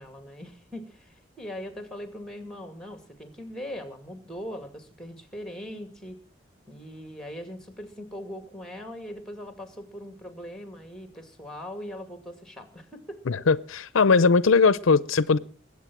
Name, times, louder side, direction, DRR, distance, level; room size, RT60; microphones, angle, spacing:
voice 1, 0.0-6.2 6.7-13.2, equal, 5° left, 2.3 m, -40 dB
voice 2, 13.3-15.4, left 4 dB, 85° left, 0.6 m, -20 dB
21.5 x 8.4 x 6.1 m
head